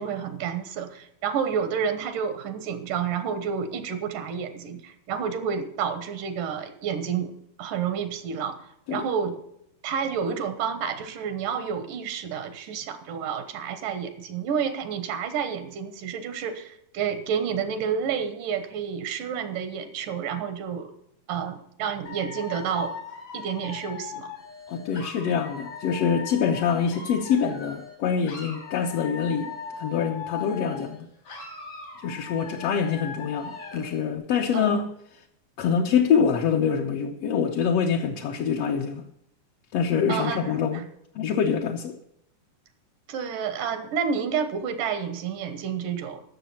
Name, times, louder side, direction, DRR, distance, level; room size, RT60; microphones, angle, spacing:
voice 1, 0.0-7.3 7.6-8.6 8.9-9.4 9.8-20.9 21.3-23.0 23.3-24.3 34.5-34.8 40.1-40.8 43.1-46.2, right 7 dB, 90° right, 2.8 m, -30 dB
Dog / Alarm, 22.1-28.0 28.2-31.0 31.2-34.0, left 5 dB, 85° left, 5.4 m, -39 dB
voice 2, 24.7-31.1 32.0-34.9 35.6-39.0 39.7-40.8 41.1-42.0, left 7 dB, 65° left, 1.6 m, -25 dB
15.0 x 6.7 x 5.6 m
omnidirectional pair, 3.7 m